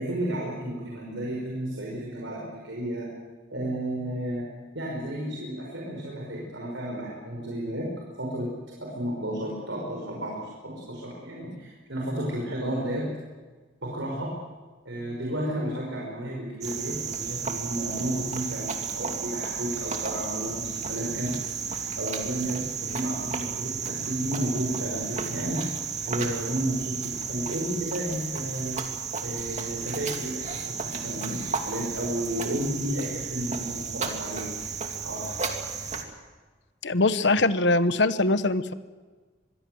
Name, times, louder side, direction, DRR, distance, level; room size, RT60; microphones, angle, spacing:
voice 1, 0.0-3.1 3.5-4.5 4.7-7.9 8.2-8.5 8.8-13.1 13.8-14.3 14.9-21.4 21.7-25.7 26.1-28.8 29.2-34.5 35.0-35.3, right 1 dB, 75° right, -2 dB, 5.4 m, -32 dB
Cricket, 16.6-36.0, right 6 dB, 35° right, 2.5 m, -33 dB
voice 2, 36.8-38.7, left 2 dB, 65° left, 12 dB, 1.1 m, -22 dB
25.5 x 21.5 x 7.9 m, 1.4 s
head